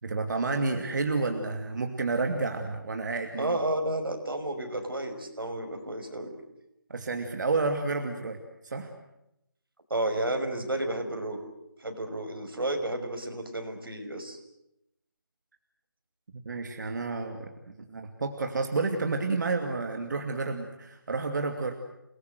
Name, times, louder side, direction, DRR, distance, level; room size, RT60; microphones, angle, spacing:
voice 1, 0.0-3.6 6.9-8.4 8.6-8.9 16.3-21.7, right 3 dB, 55° right, 4 dB, 2.7 m, -30 dB
voice 2, 3.4-6.3 9.9-11.4 11.8-14.4, right 1 dB, 90° right, 5 dB, 5.9 m, -31 dB
29.0 x 20.0 x 8.0 m, 0.84 s
figure-of-eight pair, 160°, 12 cm